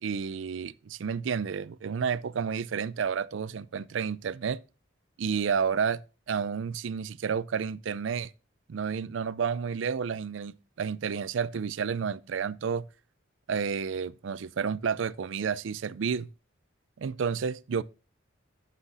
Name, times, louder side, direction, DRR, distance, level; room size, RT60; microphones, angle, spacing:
voice 1, 0.0-4.6 5.2-6.0 6.3-8.3 8.7-12.8 13.5-16.3 17.0-17.8, right 6 dB, 70° right, 0.4 m, -30 dB
14.0 x 5.7 x 2.6 m
head